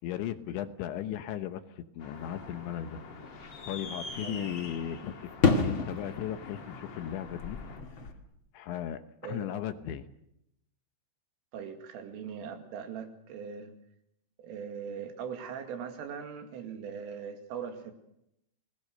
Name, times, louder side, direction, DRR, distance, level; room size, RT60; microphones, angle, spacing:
voice 1, 0.0-3.0 3.7-7.6 8.5-10.1, left 11 dB, 75° left, 9 dB, 3.1 m, -36 dB
sound 1, 2.0-7.8, left 4 dB, 55° left, 4.7 m, -48 dB
sound 2, 2.1-8.1, left 4 dB, 40° left, 1.8 m, -33 dB
voice 2, 4.2-4.5 9.2-9.5 11.5-13.7 14.4-17.9, right 7 dB, 75° right, 6 dB, 4.8 m, -40 dB
29.5 x 20.5 x 6.6 m, 0.81 s
omnidirectional pair, 5.8 m